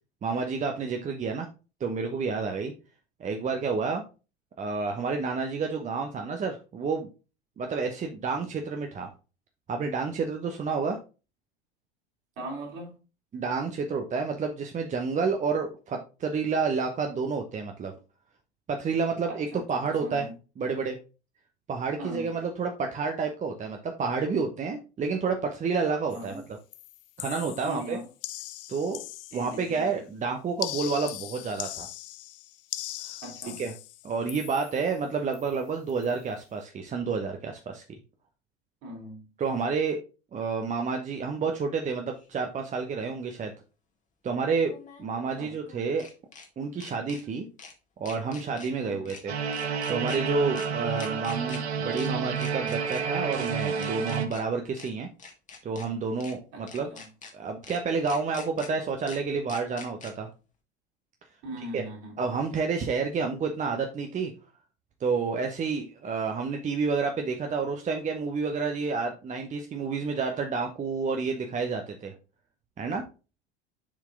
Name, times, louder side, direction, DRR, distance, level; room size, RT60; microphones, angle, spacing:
voice 1, 0.2-1.5 1.8-2.7 3.2-4.0 4.6-7.1 7.6-9.1 9.7-11.0 13.3-17.9 18.7-20.3 20.6-21.0 21.7-26.4 27.2-28.0 28.7-29.0 29.3-31.9 33.0-33.2 33.6-33.7 34.0-37.8 39.4-40.0 40.3-43.5 44.2-44.7 45.0-46.1 46.6-47.5 48.0-49.3 49.9-55.1 55.6-56.9 57.3-60.3 61.7-61.8 62.2-64.3 65.0-72.1 72.8-73.0, right 4 dB, 25° right, 0.9 m, -29 dB
voice 2, 12.4-13.0 19.3-19.6 20.0-20.3 22.0-22.3 26.1-26.4 27.6-28.0 29.3-29.9 33.2-33.6 38.8-39.3 45.2-45.5 48.8-49.1 50.9-51.0 56.5-57.1 61.4-62.2, equal, 50° right, 3.5 m, -40 dB
sound 1, 26.1-26.4 26.7-29.8 30.6-35.0 35.3-35.6 35.9-36.2, left 16 dB, 60° left, 0.5 m, -40 dB
sound 2, 42.2-42.3 44.6-46.5 46.8-47.2 47.6-47.7 48.1-48.7 49.1-49.2 49.5-50.2 50.6-50.7 51.0-51.6 51.9-52.1 52.4-53.0 53.3-53.5 53.8-54.4 54.8-54.9 55.2-55.9 56.2-56.3 56.7-57.3 57.6-57.8 58.1-58.7 59.1-59.2 59.5-60.1, left 5 dB, 25° left, 1.6 m, -45 dB
sound 3, 49.3-54.3, right 6 dB, 75° right, 1.0 m, -30 dB
7.2 x 4.6 x 3.6 m
figure-of-eight pair, 80°, 32 cm